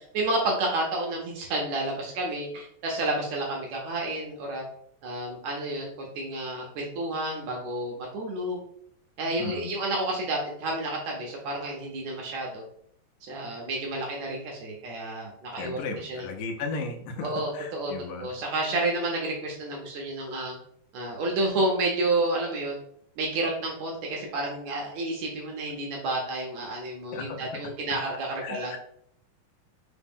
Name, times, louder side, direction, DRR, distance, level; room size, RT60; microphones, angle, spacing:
voice 1, 0.1-4.6 5.0-8.6 9.2-12.6 13.2-15.8 16.1-16.2 17.2-17.9 18.2-20.5 20.9-22.8 23.2-28.8, right 2 dB, 75° right, -1 dB, 1.7 m, -30 dB
voice 2, 9.4-9.7 15.6-18.3 27.1-27.6 28.4-28.8, left 4 dB, 80° left, 4 dB, 2.0 m, -35 dB
5.0 x 2.0 x 3.5 m, 0.69 s
omnidirectional pair, 3.6 m